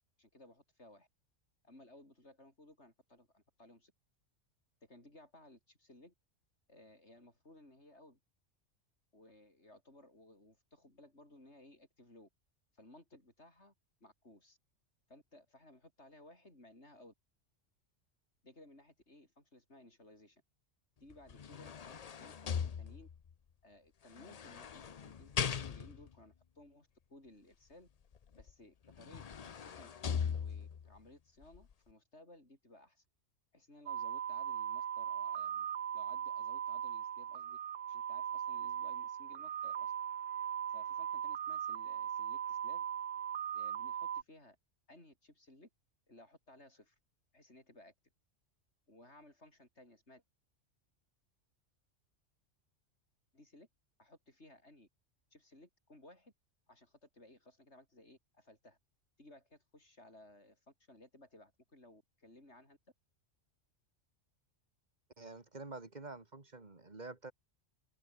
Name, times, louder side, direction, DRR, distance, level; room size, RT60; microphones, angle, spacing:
voice 1, 0.2-1.1 1.6-3.9 4.8-6.1 6.7-8.2 9.1-12.3 12.7-13.7 14.0-14.6 15.1-17.1 18.4-20.4 21.0-23.1 23.6-27.9 28.3-33.0 33.5-35.7 35.9-37.6 37.9-39.9 40.7-42.8 43.5-44.6 44.9-45.7 46.1-47.0 47.3-47.9 48.9-50.2 53.3-53.7 54.0-54.9 55.3-56.3 56.7-58.8 59.2-62.8, left 1 dB, 65° left, 7.4 m, -59 dB
sound 1, 21.1-23.3 24.2-26.1 28.4-28.5 28.9-30.9 31.4-31.6, left 7 dB, 40° left, 0.6 m, -39 dB
sound 2, 33.9-44.2, right 9 dB, 80° right, 1.3 m, -39 dB
voice 2, 65.2-67.3, right 3 dB, 35° right, 2.5 m, -48 dB
omnidirectional pair, 1.3 m